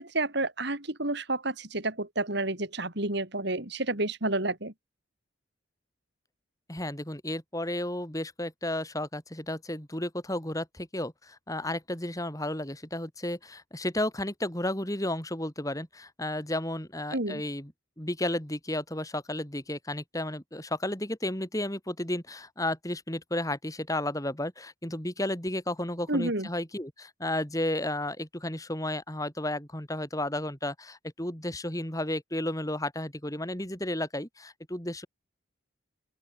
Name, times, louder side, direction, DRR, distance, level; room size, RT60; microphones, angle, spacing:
voice 1, 0.0-4.7 17.1-17.4 26.1-26.5, right 2 dB, 55° right, 3.5 m, -30 dB
voice 2, 6.7-17.7 18.0-35.1, left 1 dB, 15° left, 3.6 m, -33 dB
open air
head